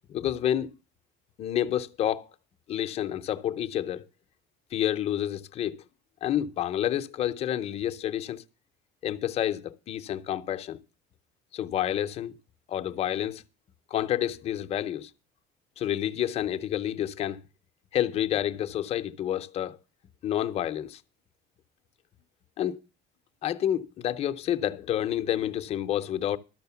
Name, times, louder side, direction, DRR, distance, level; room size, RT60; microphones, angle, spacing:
voice 1, 0.1-0.7 1.4-2.3 2.7-4.0 4.7-5.8 6.2-8.4 9.0-10.8 11.5-12.4 12.7-13.4 13.9-15.1 15.8-17.4 17.9-19.8 20.2-21.0 22.6-22.8 23.4-26.4, left 11 dB, 35° left, 0.6 m, -29 dB
12.5 x 6.3 x 6.9 m
cardioid pair, 170°, 18 cm